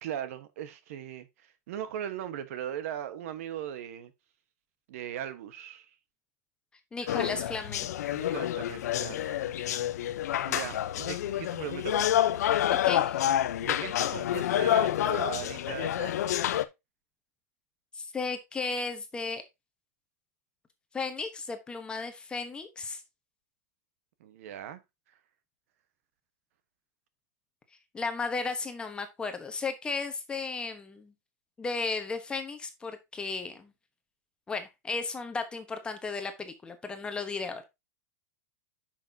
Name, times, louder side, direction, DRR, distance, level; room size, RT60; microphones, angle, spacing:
voice 1, 0.0-4.1 4.9-5.9 7.0-7.4 8.1-9.6 10.4-12.1 13.3-16.3 24.2-24.8, right 10 dB, 60° right, 1.3 m, -39 dB
voice 2, 6.9-7.9 12.8-13.3 17.9-19.4 20.9-23.0 27.9-31.1 31.6-33.7 34.5-37.6, left 4 dB, 10° left, 1.1 m, -34 dB
sound 1, 7.1-16.6, left 12 dB, 80° left, 0.8 m, -28 dB
9.9 x 5.9 x 2.8 m
supercardioid pair, 160°, 9 cm